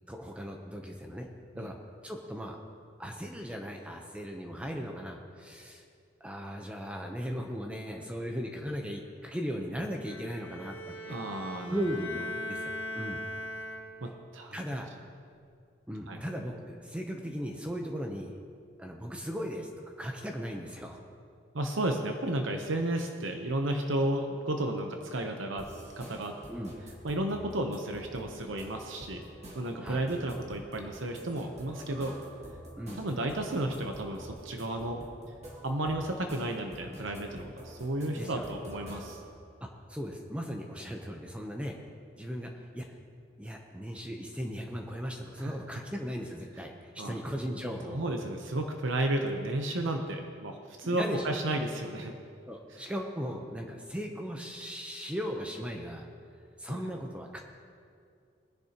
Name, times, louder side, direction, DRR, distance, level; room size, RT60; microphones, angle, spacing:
voice 1, 0.1-1.3 1.5-1.8 2.0-2.6 3.0-5.8 6.2-11.2 11.7-13.2 14.0-14.1 14.5-14.9 15.9-18.4 18.8-21.0 26.5-26.7 29.8-30.0 32.8-33.0 38.2-38.4 39.6-41.8 42.2-42.9 43.4-48.1 50.8-51.4 52.5-56.1 56.6-57.4, equal, 5° right, 2 dB, 0.7 m, -37 dB
Bowed string instrument, 10.0-14.2, left 1 dB, 60° left, 1.8 m, -40 dB
voice 2, 11.1-11.8 14.0-14.6 16.1-16.2 21.5-25.7 26.0-26.3 27.0-29.2 29.5-32.1 33.0-35.0 35.6-39.2 45.4-45.5 47.0-47.2 47.9-52.1 56.7-56.8, right 1 dB, 85° right, 3 dB, 0.9 m, -33 dB
sound 1, 25.6-39.3, equal, 35° right, 1.7 m, -48 dB
20.0 x 10.5 x 2.9 m, 2.3 s
head